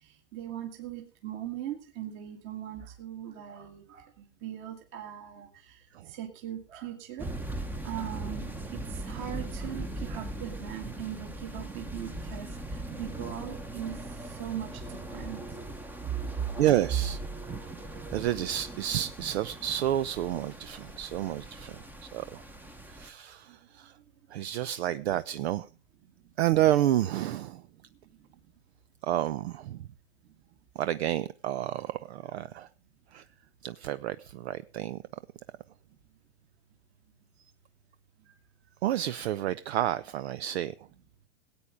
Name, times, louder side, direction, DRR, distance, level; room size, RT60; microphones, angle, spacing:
voice 1, 0.0-7.3 7.8-8.5 8.7-15.4 16.1-16.5, right 10 dB, 35° right, 4 dB, 2.0 m, -39 dB
sound 1, 7.2-23.1, right 2 dB, 5° right, 0.9 m, -40 dB
voice 2, 16.6-17.2 18.1-21.8 22.1-22.4 22.9-23.9 24.3-25.7 26.4-27.6 29.0-29.8 30.8-32.7 33.1-33.2 33.6-35.0 38.8-40.7, right 12 dB, 60° right, 15 dB, 0.7 m, -30 dB
17.5 x 8.8 x 5.0 m, 0.34 s
hypercardioid pair, 140°, 36 cm